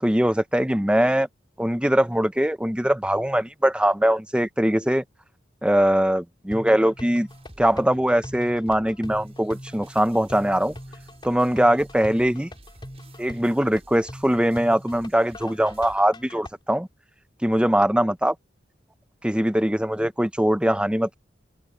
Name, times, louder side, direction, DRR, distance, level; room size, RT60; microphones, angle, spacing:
voice 1, 0.0-1.3 1.6-5.0 5.6-7.3 7.6-10.7 11.2-12.5 13.2-16.9 17.4-18.3 19.2-21.2, right 1 dB, 5° right, 0.8 m, -21 dB
sound 1, 6.5-16.5, equal, 25° left, 4.1 m, -41 dB
sound 2, 7.3-16.0, right 1 dB, 35° right, 6.7 m, -52 dB
open air
head